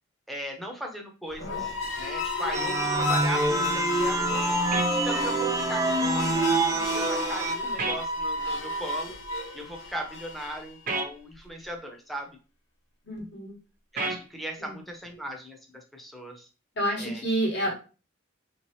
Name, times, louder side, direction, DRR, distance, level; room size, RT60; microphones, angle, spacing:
voice 1, 0.3-9.2 9.5-12.3 13.9-16.5 17.0-17.2 17.6-17.7, equal, ahead, 2 dB, 0.7 m, -38 dB
sound 1, 1.3-10.7, left 2 dB, 80° left, 0.8 m, -31 dB
sound 2, 2.5-7.5, right 3 dB, 15° right, 0.3 m, -27 dB
sound 3, 4.7-4.9 7.8-8.0 10.9-11.1 14.0-14.2, right 3 dB, 45° right, 0.6 m, -29 dB
voice 2, 13.0-13.6 14.6-14.8 16.7-17.8, right 1 dB, 60° left, 0 dB, 1.4 m, -29 dB
3.4 x 3.0 x 3.1 m, 0.33 s
head